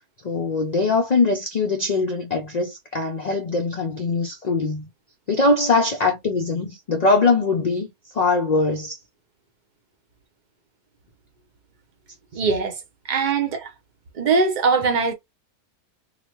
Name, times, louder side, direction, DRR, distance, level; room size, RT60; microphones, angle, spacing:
voice 1, 0.2-4.9 5.3-7.9 8.1-9.0, left 3 dB, 55° left, 0.4 m, -22 dB
voice 2, 12.3-12.8 13.1-13.7 14.1-15.1, right 4 dB, 45° right, 0.7 m, -21 dB
3.9 x 2.1 x 2.9 m
omnidirectional pair, 1.5 m